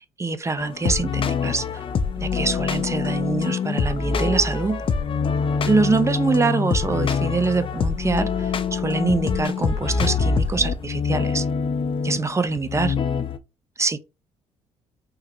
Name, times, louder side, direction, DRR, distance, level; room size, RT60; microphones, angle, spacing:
voice 1, 0.2-1.6 2.2-4.8 5.7-11.4 12.0-12.9 13.8-14.0, right 3 dB, 20° right, 0.5 m, -24 dB
sound 1, 0.6-13.4, left 5 dB, 40° left, 0.4 m, -25 dB
3.6 x 2.0 x 2.9 m
hypercardioid pair, 55°, 14 cm